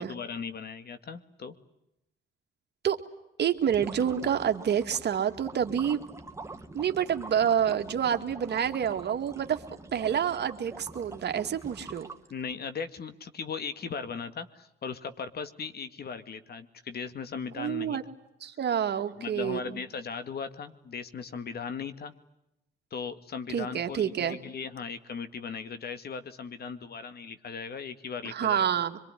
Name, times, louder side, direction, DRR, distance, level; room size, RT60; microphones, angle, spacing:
voice 1, 0.0-1.5 12.3-18.0 18.9-22.1 22.9-28.7, left 5 dB, 55° left, 11 dB, 2.2 m, -38 dB
voice 2, 3.4-6.0 6.7-9.6 9.9-12.1 17.6-18.0 18.4-19.8 23.5-24.4 28.2-29.0, right 8 dB, 60° right, 7 dB, 2.1 m, -28 dB
sound 1, 3.6-12.5, right 2 dB, 15° right, 1.9 m, -45 dB
25.0 x 23.5 x 10.0 m, 0.87 s
cardioid pair, 90°, 20 cm